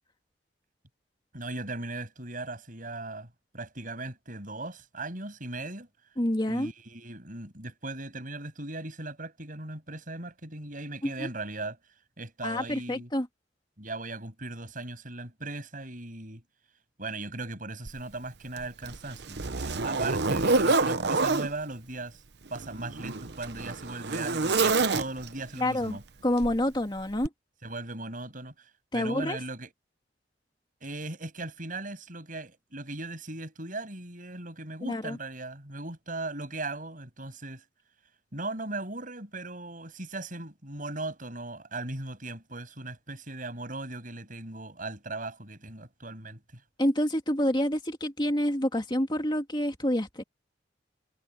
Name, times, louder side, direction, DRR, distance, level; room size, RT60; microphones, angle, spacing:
voice 1, 1.3-3.3 3.5-5.9 6.4-11.8 12.2-13.1 13.8-16.4 17.0-22.2 22.5-26.0 27.6-29.7 30.8-37.6 38.3-46.6, right 2 dB, 45° right, 7.8 m, -38 dB
voice 2, 6.2-6.7 11.2-11.3 12.4-13.3 25.6-27.3 28.9-29.4 34.8-35.2 46.8-50.2, left 1 dB, 25° left, 2.2 m, -28 dB
Zipper (clothing), 17.9-18.0 18.6-21.5 22.5-25.4 26.4-26.6 27.2-27.3, right 3 dB, 65° right, 1.0 m, -27 dB
head